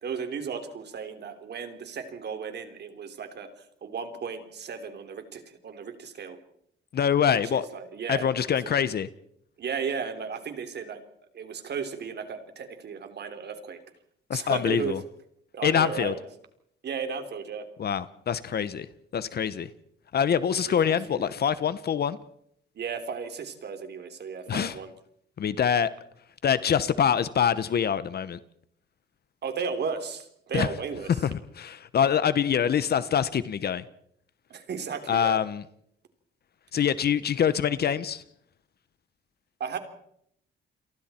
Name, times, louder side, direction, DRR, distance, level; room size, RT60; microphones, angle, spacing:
voice 1, 0.0-6.4 7.5-8.3 9.6-11.0 11.3-13.8 14.3-15.0 15.5-16.2 16.8-17.7 20.3-21.3 22.8-24.9 29.4-31.1 34.5-35.4 39.6-39.8, right 6 dB, 55° right, 3.5 m, -35 dB
voice 2, 6.9-7.7 8.1-9.1 14.3-15.0 15.6-16.1 17.8-18.9 19.1-19.7 20.1-22.2 24.5-24.7 25.4-25.9 26.4-28.4 30.5-30.7 31.2-33.8 35.1-35.6 36.7-38.2, left 8 dB, 55° left, 1.0 m, -25 dB
29.5 x 23.5 x 4.5 m
cardioid pair, 90°, 20 cm